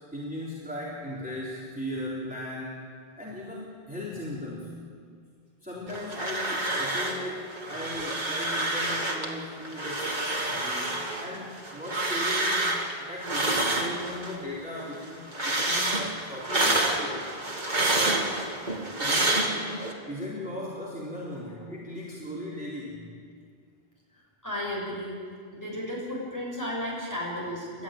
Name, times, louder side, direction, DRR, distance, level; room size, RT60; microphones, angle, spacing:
voice 1, 0.1-2.9 3.2-4.8 5.6-12.7 13.0-17.3 18.1-18.4 19.0-19.7 20.1-23.1, left 1 dB, 10° right, -7 dB, 3.7 m, -37 dB
sound 1, 5.9-7.3 7.5-9.3 9.7-14.4 14.7-19.9, right 2 dB, 50° right, 2.7 m, -28 dB
voice 2, 24.4-25.2 25.5-27.8, left 1 dB, 20° left, -4 dB, 7.6 m, -34 dB
30.0 x 13.5 x 9.0 m, 2.1 s
omnidirectional pair, 1.0 m